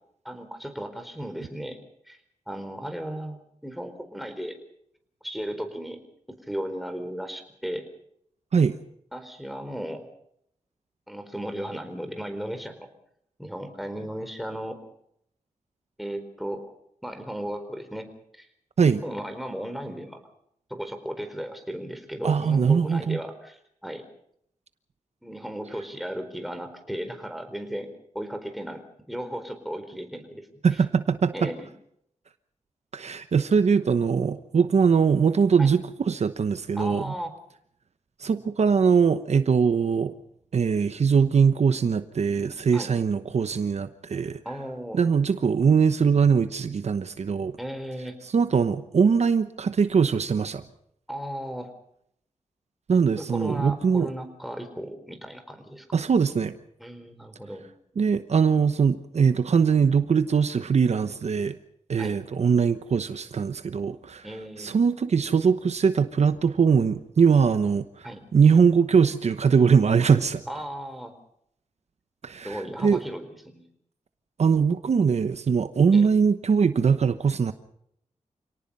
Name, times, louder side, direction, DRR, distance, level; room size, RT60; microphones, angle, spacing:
voice 1, 0.2-1.8 2.1-2.2 2.5-4.6 5.2-6.0 6.5-7.9 9.1-10.1 11.1-12.9 13.4-14.8 16.0-16.7 17.0-18.5 19.0-20.2 20.7-24.0 25.2-27.9 28.1-30.8 31.3-31.7 35.6-35.7 36.7-37.3 42.7-42.9 44.4-45.0 47.6-48.2 51.1-51.7 53.2-55.9 56.8-57.6 62.0-62.2 64.2-64.7 68.0-68.2 70.5-71.1 72.4-73.6 75.9-76.1, equal, ahead, 7 dB, 4.2 m, -35 dB
voice 2, 22.2-23.2 30.6-31.5 32.9-35.8 36.1-37.1 38.2-40.2 40.5-44.4 44.9-47.6 48.3-50.6 52.9-54.1 55.9-56.6 58.0-61.6 61.9-64.3 64.6-68.1 68.3-70.4 72.2-73.0 74.4-77.5, right 6 dB, 65° right, 11 dB, 1.0 m, -21 dB
28.0 x 18.5 x 5.5 m, 0.71 s
wide cardioid pair, 95°, 12 cm